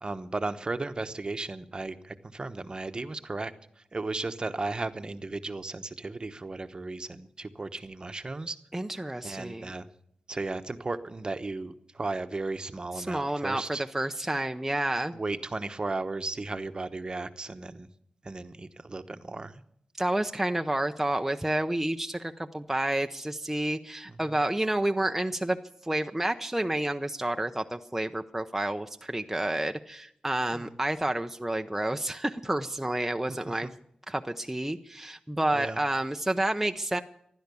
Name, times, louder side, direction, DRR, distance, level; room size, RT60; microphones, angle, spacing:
voice 1, 0.0-3.5 3.9-8.6 9.2-9.9 10.3-13.8 15.1-17.9 18.2-19.6 24.1-24.2 30.5-30.7 33.6-33.7 35.5-35.8, right 3 dB, 40° right, 9 dB, 1.0 m, -35 dB
voice 2, 8.7-9.7 13.0-15.1 20.0-25.6 25.8-33.7 34.1-37.0, right 1 dB, 10° right, 6 dB, 0.7 m, -29 dB
15.5 x 12.0 x 6.9 m, 0.72 s
wide cardioid pair, 75°, 2 cm